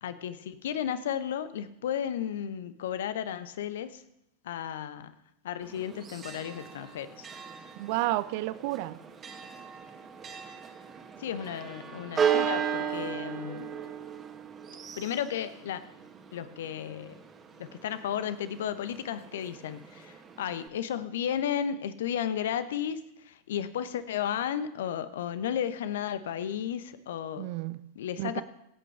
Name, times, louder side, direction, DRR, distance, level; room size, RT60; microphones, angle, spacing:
voice 1, 0.0-4.0 4.4-5.1 5.4-7.3 11.2-13.7 15.0-15.8 16.3-17.2 17.6-27.6 27.9-28.4, left 9 dB, 60° left, 13 dB, 0.9 m, -34 dB
Church bell, 5.6-20.7, right 8 dB, 25° right, 1.7 m, -36 dB
voice 2, 7.8-9.0 27.4-27.8 28.2-28.4, right 17 dB, 45° right, 15 dB, 0.6 m, -31 dB
24.5 x 8.5 x 3.4 m, 0.82 s
figure-of-eight pair, 90°, 0 cm